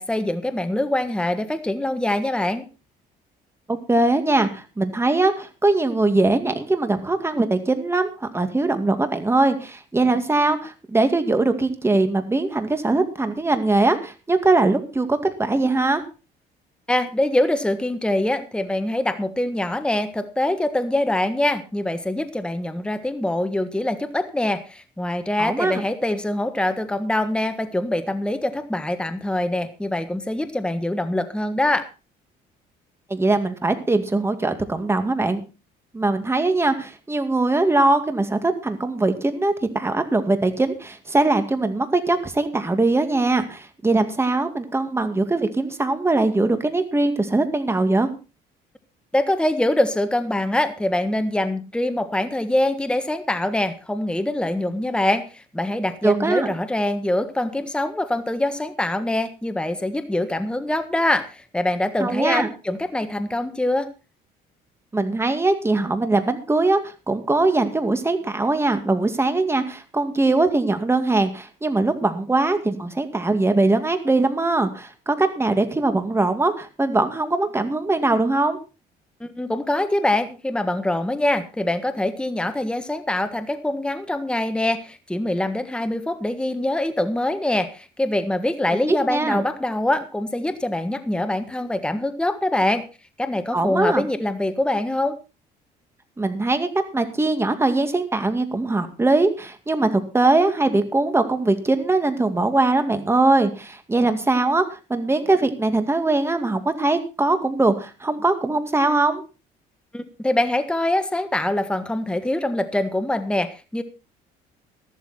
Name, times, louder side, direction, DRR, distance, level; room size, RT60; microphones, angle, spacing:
voice 1, 0.0-2.7 16.9-31.9 49.1-63.9 79.2-92.8 93.2-95.2 109.9-113.8, left 1 dB, 5° left, 9 dB, 1.4 m, -24 dB
voice 2, 3.7-16.0 25.4-25.8 33.1-35.4 35.9-48.1 56.0-56.5 62.0-62.5 64.9-66.8 67.1-78.6 88.7-88.8 89.1-89.4 93.5-94.1 96.2-96.7 96.9-109.2, right 2 dB, 15° right, 8 dB, 2.2 m, -21 dB
13.5 x 12.5 x 4.3 m, 0.31 s
cardioid pair, 110°, 17 cm